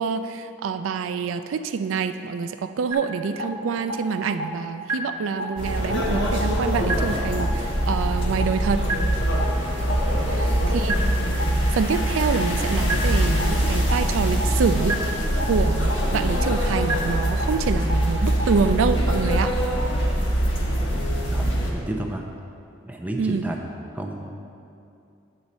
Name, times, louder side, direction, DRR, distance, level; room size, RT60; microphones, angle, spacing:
voice 1, 0.0-8.8 10.4-10.9 11.7-15.0 15.5-19.6 23.2-23.4, right 5 dB, 90° right, 9 dB, 0.4 m, -26 dB
sound 1, 2.9-3.0 3.4-3.5 3.9-4.0 4.4-4.5 4.9-5.0 5.4-5.5 5.9-6.0 6.4-6.5 6.9-7.0 7.4-7.5 7.9-8.0 8.4-8.5 8.9-9.0 9.4-9.5 9.9-10.0 10.4-10.5 10.9-11.0 11.4-11.5 11.9-12.0 12.4-12.5 12.9-13.0 13.4-13.5 13.9-14.0 14.4-14.5 14.9-15.0 15.4-15.5 15.9-16.0 16.4-16.5 16.9-17.0 17.4-17.5 17.9-18.0 18.4-18.5, right 2 dB, 35° right, 1.0 m, -26 dB
sound 2, 5.6-21.7, equal, 70° left, 1.2 m, -23 dB
voice 2, 21.3-22.2 22.9-24.3, right 1 dB, 10° right, 1 dB, 0.5 m, -32 dB
8.6 x 6.6 x 4.1 m, 2.6 s
head